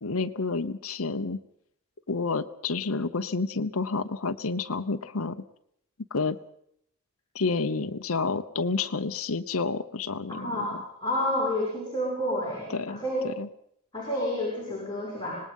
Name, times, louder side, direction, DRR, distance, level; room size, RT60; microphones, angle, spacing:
voice 1, 0.0-1.4 2.1-5.4 6.1-6.4 7.3-10.6 12.7-13.0 13.2-13.5, left 4 dB, 70° left, 8 dB, 1.0 m, -29 dB
voice 2, 10.4-13.3 13.9-15.4, left 1 dB, 20° left, -5 dB, 6.9 m, -29 dB
25.5 x 19.5 x 5.5 m, 0.71 s
head